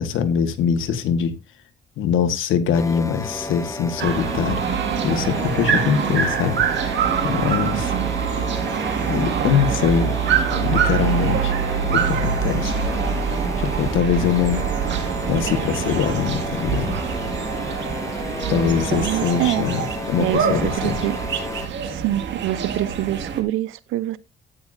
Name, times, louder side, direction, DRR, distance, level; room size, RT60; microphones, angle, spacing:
voice 1, 0.0-1.3 2.0-4.6 5.0-6.6 7.2-7.9 9.1-10.2 10.5-11.5 11.9-12.7 13.6-14.6 15.3-17.0 18.5-21.0, left 8 dB, 80° left, 1.6 m, -22 dB
sound 1, 2.7-21.7, left 2 dB, 15° left, 1.4 m, -32 dB
sound 2, 4.0-23.4, right 7 dB, 65° right, 2.0 m, -24 dB
voice 2, 7.7-8.3 18.5-19.6 20.2-21.2 21.8-24.2, right 14 dB, 90° right, 0.7 m, -26 dB
12.5 x 9.0 x 2.6 m
cardioid pair, 90°, 20 cm